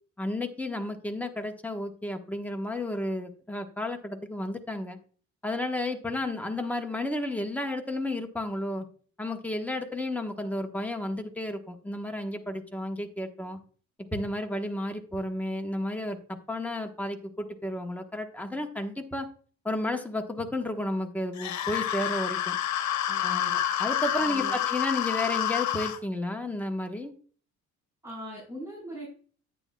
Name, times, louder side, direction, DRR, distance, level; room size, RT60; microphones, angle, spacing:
voice 1, 0.2-5.0 5.4-8.8 9.2-13.6 14.1-16.2 16.5-19.3 19.6-22.6 23.2-27.1, left 1 dB, 5° left, 3 dB, 1.2 m, -32 dB
sound 1, 21.4-26.0, left 11 dB, 70° left, 1.1 m, -28 dB
voice 2, 23.1-23.6 24.2-24.6 28.0-29.1, equal, 10° right, -4 dB, 4.3 m, -40 dB
9.8 x 9.7 x 2.3 m, 0.42 s
cardioid pair, 135°, 30 cm